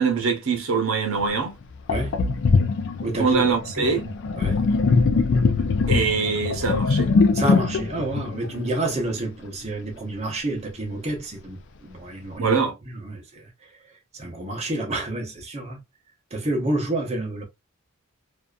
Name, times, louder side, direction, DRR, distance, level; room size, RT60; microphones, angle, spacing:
voice 1, 0.0-1.6 3.2-4.0 5.9-7.1 12.4-12.7, right 5 dB, 70° right, 0.8 m, -23 dB
Sink (filling or washing), 1.2-1.3 1.9-9.2, left 4 dB, 55° left, 0.3 m, -22 dB
voice 2, 3.0-3.5 3.7-4.1 4.4-4.6 7.3-12.6 12.8-13.7 14.1-15.8 16.3-17.5, right 2 dB, 30° right, 0.8 m, -29 dB
2.6 x 2.3 x 2.3 m
head